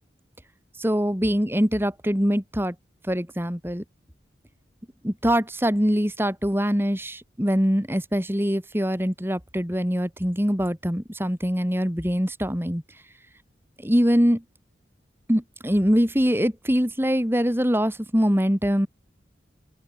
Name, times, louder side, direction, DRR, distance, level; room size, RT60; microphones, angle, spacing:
voice 1, 0.8-2.7 3.1-3.8 5.0-12.8 13.8-14.4 15.3-18.9, equal, 15° right, 3.7 m, -23 dB
open air
head